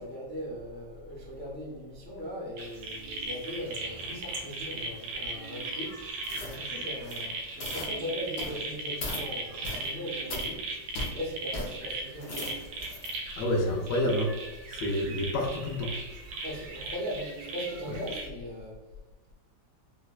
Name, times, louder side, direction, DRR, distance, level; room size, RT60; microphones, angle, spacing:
voice 1, 0.0-5.9 6.3-10.6 11.0-12.5 16.4-18.7, equal, 15° left, -7 dB, 0.3 m, -39 dB
sound 1, 2.6-18.3, right 2 dB, 90° right, 1.4 m, -38 dB
sound 2, 6.2-6.6 7.0-7.3 7.6-7.9 8.4-8.6 9.0-9.2 9.6-9.9 10.3-10.5 10.9-11.1 11.5-11.7 12.1-13.2 13.6-13.7, left 2 dB, 65° left, 0.7 m, -38 dB
voice 2, 13.4-14.3 14.7-15.9 17.9-18.0, left 1 dB, 85° left, 1 dB, 1.4 m, -28 dB
4.3 x 2.2 x 2.3 m, 1.2 s
omnidirectional pair, 2.0 m